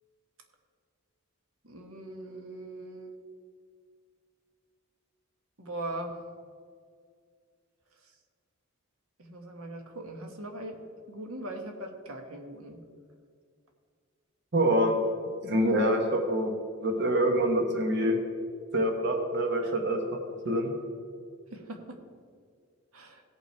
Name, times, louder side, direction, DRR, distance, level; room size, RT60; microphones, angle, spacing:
voice 1, 1.6-3.1 5.6-6.2 9.2-10.8 11.1-12.8 19.6-19.7 21.5-22.0 22.9-23.2, right 1 dB, 80° right, 4 dB, 1.4 m, -40 dB
voice 2, 14.5-15.0 15.4-16.5 16.8-18.2 18.7-20.0 20.4-20.7, right 1 dB, 55° right, 2 dB, 1.2 m, -25 dB
17.0 x 5.7 x 4.5 m, 2.1 s
head